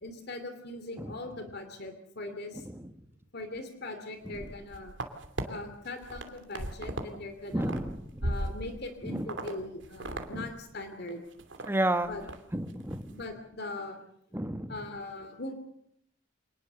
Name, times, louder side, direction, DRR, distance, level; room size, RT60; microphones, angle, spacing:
voice 1, 0.0-2.7 3.3-4.9 5.4-7.8 8.2-11.2 12.1-12.2 13.1-14.0 14.7-15.5, left 2 dB, 55° left, 7 dB, 2.8 m, -40 dB
sound 1, 4.3-5.4 5.9-7.1 7.4-8.9 9.3-9.5 9.8-10.3 10.6-10.7 11.1-11.7 12.0-12.4 12.7-13.0, right 1 dB, 65° right, 2.8 m, -37 dB
voice 2, 7.5-8.0 9.1-9.2 10.3-10.4 11.7-12.1 12.5-13.1 14.3-14.7, right 1 dB, 10° right, 9 dB, 1.4 m, -30 dB
26.0 x 19.5 x 6.9 m, 0.73 s
head